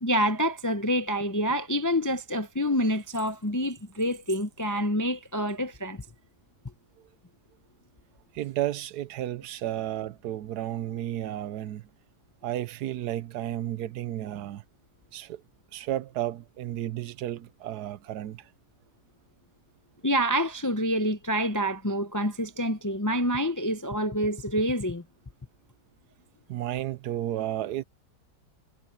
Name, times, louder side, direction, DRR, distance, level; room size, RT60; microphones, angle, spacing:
voice 1, 0.0-6.0 20.0-25.0, equal, 25° left, 0.3 m, -27 dB
voice 2, 8.3-11.9 12.4-14.6 15.1-15.4 15.7-18.5 26.5-27.8, right 13 dB, 90° right, 1.2 m, -32 dB
omnidirectional pair, 1.7 m